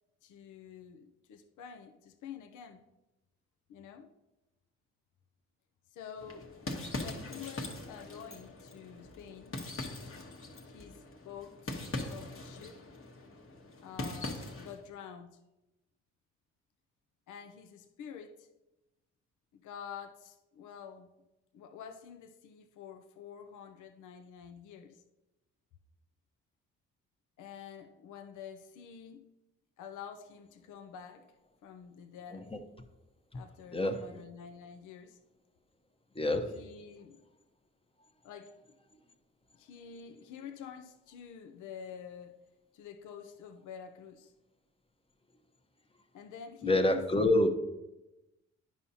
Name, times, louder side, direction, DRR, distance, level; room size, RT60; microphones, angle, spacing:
voice 1, 0.2-2.8 3.7-4.1 5.9-6.5 7.0-9.6 10.6-11.8 12.1-12.8 13.8-15.4 17.3-18.5 19.5-21.1 21.5-25.0 27.4-29.3 29.8-31.3 31.6-32.6 33.3-35.2 36.5-37.2 38.2-38.8 39.5-42.4 42.7-44.3 46.1-47.1, left 7 dB, 75° left, 6 dB, 0.6 m, -48 dB
sound 1, 6.2-14.8, left 2 dB, 45° left, 1.2 m, -42 dB
voice 2, 33.7-34.1 36.1-36.7 46.6-47.5, left 1 dB, 20° left, 5 dB, 0.9 m, -27 dB
9.8 x 5.6 x 2.8 m, 0.98 s
supercardioid pair, 55°, 31 cm